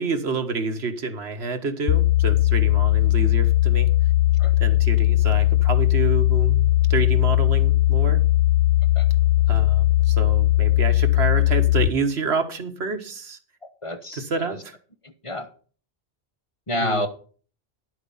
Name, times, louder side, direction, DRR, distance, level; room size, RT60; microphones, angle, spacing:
voice 1, 0.0-3.9 4.6-8.2 9.5-13.4 14.2-14.7 16.8-17.0, right 4 dB, 85° right, 1.5 m, -28 dB
sound 1, 1.9-11.9, left 15 dB, 45° left, 0.5 m, -19 dB
voice 2, 13.6-14.6 15.0-15.5 16.7-17.1, left 1 dB, 30° left, 1.0 m, -29 dB
10.5 x 8.0 x 5.5 m
omnidirectional pair, 1.1 m